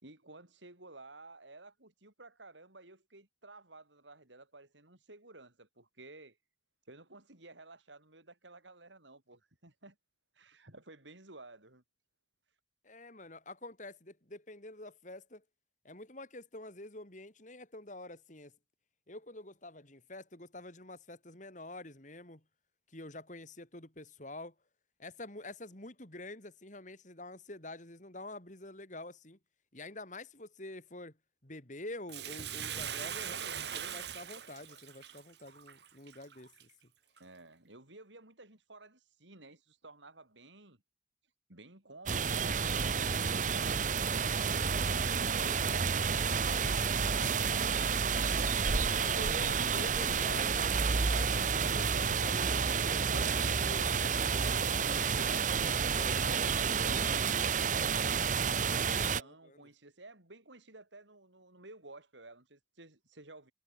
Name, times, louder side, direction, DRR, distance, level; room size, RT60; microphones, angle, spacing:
voice 1, 0.0-6.4 6.9-10.0 10.3-11.8 37.2-40.8 41.5-43.9 56.2-58.9 59.2-63.5, right 2 dB, 85° right, 6.0 m, -54 dB
voice 2, 12.8-15.4 15.8-18.5 19.1-22.4 22.9-24.5 25.0-29.4 29.7-31.1 31.4-36.7 45.0-45.8 49.0-50.8 51.1-57.1 58.6-59.6, left 2 dB, 45° left, 4.0 m, -48 dB
Bathtub (filling or washing), 32.1-36.6 37.2-37.3, right 8 dB, 65° right, 2.3 m, -41 dB
sound 1, 42.1-59.2, right 6 dB, 45° right, 0.9 m, -30 dB
head